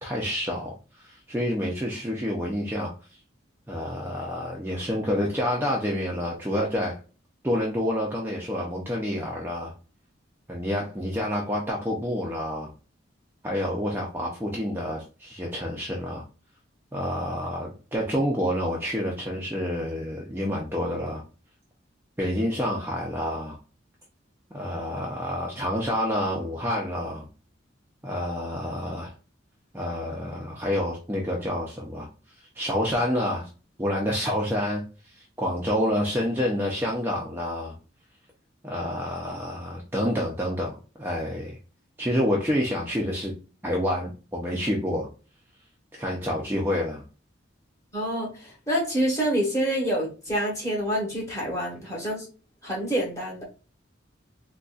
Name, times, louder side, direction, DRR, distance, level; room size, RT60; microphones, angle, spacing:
voice 1, 0.0-2.9 3.7-7.0 7.4-9.7 10.5-12.7 13.4-16.2 16.9-21.2 22.2-23.6 24.5-27.3 28.0-29.1 29.7-32.1 32.6-33.5 33.8-34.8 35.2-37.7 38.6-41.6 42.0-43.3 43.6-45.1 45.9-47.0, equal, 10° right, -2 dB, 0.5 m, -28 dB
voice 2, 47.9-52.3 52.6-53.4, equal, 15° left, -4 dB, 1.2 m, -27 dB
3.9 x 2.3 x 2.4 m, 0.34 s
head